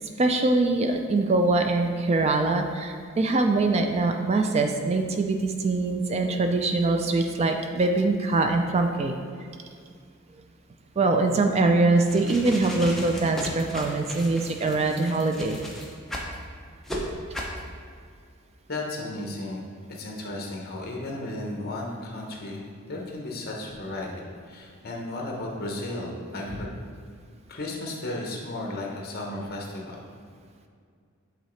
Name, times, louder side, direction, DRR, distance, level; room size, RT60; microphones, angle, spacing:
voice 1, 0.2-9.1 11.0-15.6, right 3 dB, 30° right, 5 dB, 0.3 m, -23 dB
sound 1, 12.0-16.3 16.8-17.0 17.3-17.6, equal, ahead, 0.6 m, -36 dB
voice 2, 18.7-26.7 27.5-30.0, left 2 dB, 45° left, -1 dB, 1.0 m, -34 dB
8.1 x 3.8 x 3.2 m, 2.2 s
head